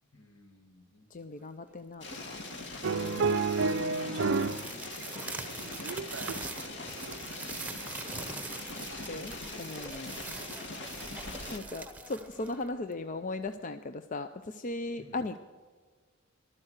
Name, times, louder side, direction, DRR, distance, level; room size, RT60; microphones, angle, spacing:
voice 1, 0.1-1.2 4.0-5.6 6.3-7.2 7.6-9.1 10.9-11.6 15.0-15.2, left 1 dB, 70° left, 5 dB, 2.1 m, -58 dB
voice 2, 1.1-2.4 8.8-10.2 11.5-15.4, left 2 dB, 35° left, 9 dB, 0.5 m, -38 dB
sound 1, 2.0-11.6, left 2 dB, 55° left, 2.0 m, -42 dB
sound 2, 2.7-13.1, right 3 dB, 5° right, 1.0 m, -43 dB
sound 3, 2.8-4.7 5.0-6.6 7.1-7.3, right 4 dB, 55° right, 0.5 m, -30 dB
14.5 x 12.0 x 6.5 m, 1.5 s
head